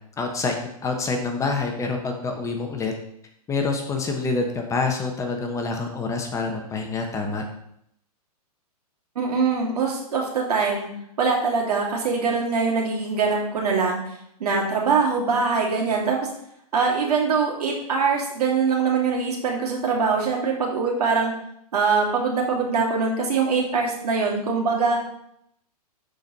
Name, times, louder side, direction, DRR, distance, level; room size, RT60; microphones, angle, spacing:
voice 1, 0.2-0.5 0.8-2.9 3.5-7.4, left 3 dB, 15° left, 3 dB, 1.1 m, -26 dB
voice 2, 9.1-10.9 11.2-14.0 14.4-16.2 16.7-21.3 21.7-25.0, right 5 dB, 80° right, -1 dB, 2.7 m, -23 dB
11.0 x 4.6 x 4.1 m, 0.73 s
hypercardioid pair, 135°, 20 cm